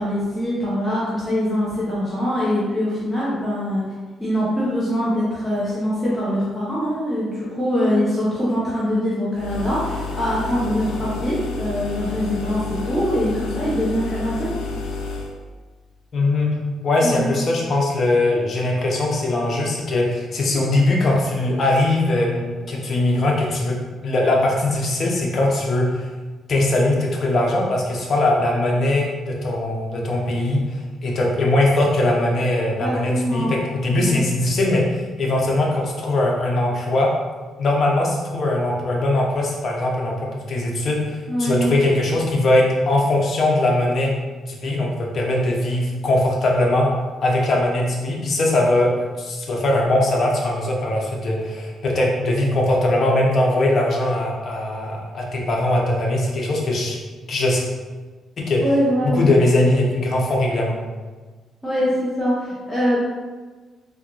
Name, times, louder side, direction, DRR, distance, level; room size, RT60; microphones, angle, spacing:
voice 1, 0.0-3.8 4.2-14.5 17.0-17.3 32.8-33.6 34.0-34.2 41.3-41.7 58.6-59.3 59.6-59.7 61.6-63.0, equal, 5° left, -9 dB, 0.9 m, -23 dB
sound 1, 9.3-15.4, left 4 dB, 85° left, 0.4 m, -30 dB
voice 2, 16.1-16.5 16.8-23.8 24.0-26.1 26.5-37.1 37.6-44.1 44.5-46.9 47.2-48.9 49.2-57.0 57.3-57.7 58.4-58.6 59.1-60.8, left 1 dB, 55° left, -2 dB, 0.8 m, -20 dB
3.5 x 2.5 x 3.0 m, 1.3 s
cardioid pair, 90°, 0 cm